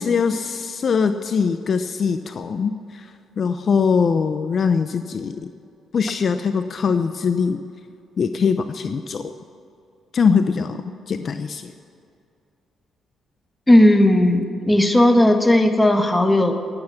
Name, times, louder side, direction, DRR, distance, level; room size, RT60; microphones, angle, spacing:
voice 1, 0.0-3.1 3.4-5.5 5.9-7.6 8.2-9.3 10.1-11.7, left 5 dB, 50° left, 9 dB, 0.6 m, -22 dB
voice 2, 13.7-16.5, left 1 dB, 10° left, 5 dB, 1.4 m, -15 dB
19.0 x 8.8 x 6.0 m, 2.5 s
cardioid pair, 90°, 0 cm